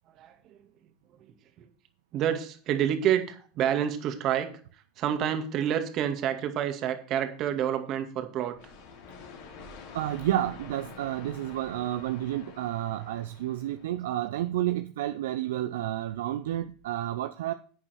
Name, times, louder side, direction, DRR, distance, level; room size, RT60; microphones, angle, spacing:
voice 1, 0.2-0.6 1.6-1.7 2.1-4.5 5.0-8.6, right 9 dB, 45° right, 2.2 m, -28 dB
sound 1, 8.5-14.2, left 4 dB, 60° left, 3.4 m, -48 dB
voice 2, 9.9-17.5, right 13 dB, 70° right, 0.6 m, -30 dB
11.5 x 8.7 x 4.4 m
hypercardioid pair, 85°, 0 cm